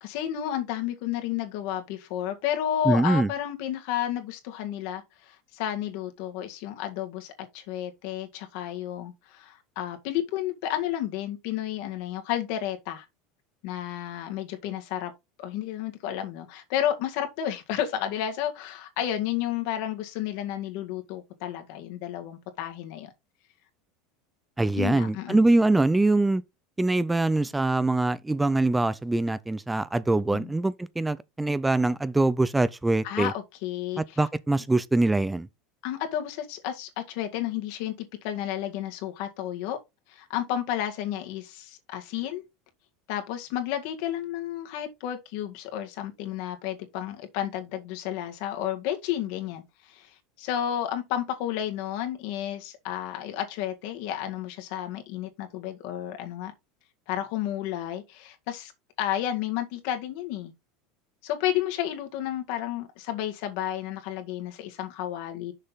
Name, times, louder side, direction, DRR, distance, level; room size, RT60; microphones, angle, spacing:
voice 1, 0.0-13.1 13.6-15.1 15.4-23.1 24.7-25.4 30.3-30.5 33.0-34.2 35.8-39.8 40.1-42.4 43.1-56.5 57.1-58.7 59.0-60.5 61.2-65.5, left 11 dB, 65° left, 1.8 m, -32 dB
voice 2, 2.8-3.3 24.6-26.4 26.8-33.3 34.0-35.5, right 2 dB, 10° right, 0.4 m, -23 dB
6.7 x 5.5 x 4.1 m
supercardioid pair, 125°, 0 cm